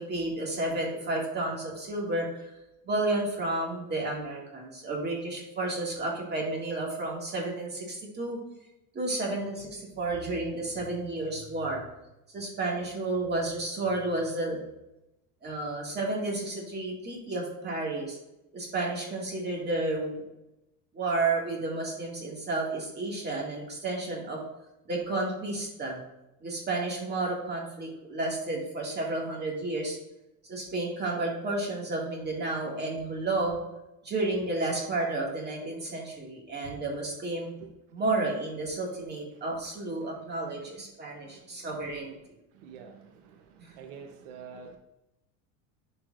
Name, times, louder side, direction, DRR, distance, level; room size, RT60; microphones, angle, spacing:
voice 1, 0.0-2.5 2.8-8.4 8.9-11.8 12.3-14.6 15.4-18.2 18.5-20.2 20.9-24.4 24.9-26.0 26.4-30.0 30.4-33.6 34.0-37.5 37.9-42.2 43.6-43.7, right 2 dB, 25° right, -1 dB, 2.1 m, -31 dB
voice 2, 42.6-42.9 43.8-44.8, right 6 dB, 80° right, 4 dB, 1.0 m, -45 dB
10.5 x 4.7 x 2.5 m, 0.91 s
cardioid pair, 130°, 38 cm